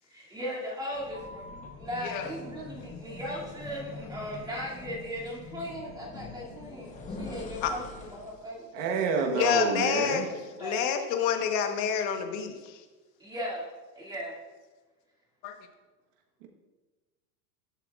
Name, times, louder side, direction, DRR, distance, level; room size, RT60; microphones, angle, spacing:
voice 1, 0.0-1.4 1.8-9.8 10.2-10.8 13.2-13.7 13.9-14.4, equal, 10° right, 2.5 m, -38 dB
sound 1, 0.9-8.4, left 3 dB, 15° left, 1.0 m, -43 dB
voice 2, 8.7-10.3, right 5 dB, 50° right, 1.3 m, -28 dB
voice 3, 9.3-10.3 10.6-12.8 15.4-15.6, left 8 dB, 45° left, 1.2 m, -28 dB
14.5 x 7.9 x 2.4 m
supercardioid pair, 150°, 47 cm